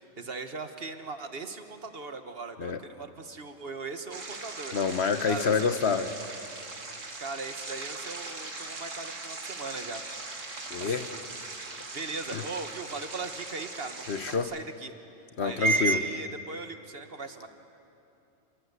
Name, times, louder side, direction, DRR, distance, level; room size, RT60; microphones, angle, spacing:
voice 1, 0.2-4.8 5.2-5.8 7.2-10.0 10.8-11.2 11.9-14.9 15.4-17.5, right 4 dB, 50° right, 7 dB, 1.6 m, -36 dB
sound 1, 4.1-14.4, right 3 dB, 90° right, 2.5 m, -40 dB
voice 2, 4.7-6.1 10.7-11.1 12.3-12.5 14.1-14.5 15.4-16.0, left 6 dB, 60° left, 10 dB, 1.2 m, -27 dB
28.0 x 24.0 x 8.3 m, 2.8 s
omnidirectional pair, 1.3 m